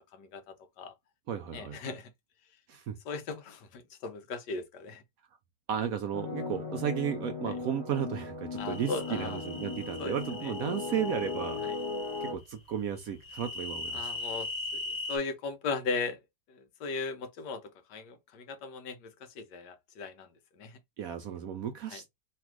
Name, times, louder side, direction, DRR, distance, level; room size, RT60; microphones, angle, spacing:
voice 1, 0.1-0.9 1.5-2.1 3.0-5.0 7.5-7.6 8.6-9.4 10.0-10.2 10.4-10.5 11.6-11.8 13.9-14.8 15.1-16.2 16.5-20.8 21.9-22.0, left 4 dB, 75° left, 1.3 m, -38 dB
voice 2, 1.3-1.9 2.7-3.0 5.7-11.6 12.2-14.1 21.0-22.1, right 9 dB, 70° right, 0.9 m, -34 dB
sound 1, 6.1-12.4, left 4 dB, 20° left, 0.9 m, -37 dB
sound 2, 8.6-12.3 13.2-15.2, left 3 dB, 45° left, 0.5 m, -40 dB
3.3 x 2.5 x 4.5 m
omnidirectional pair, 1.9 m